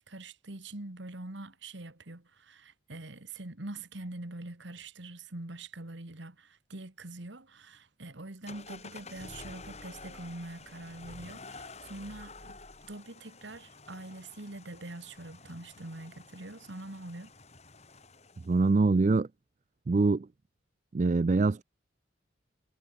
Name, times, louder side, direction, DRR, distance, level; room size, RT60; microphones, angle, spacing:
voice 1, 0.0-12.6 12.9-17.3, right 2 dB, 70° right, 1.9 m, -44 dB
sound 1, 8.5-18.7, left 3 dB, 35° left, 7.8 m, -50 dB
voice 2, 18.5-19.3 19.9-20.3 20.9-21.6, right 3 dB, 35° right, 0.4 m, -24 dB
head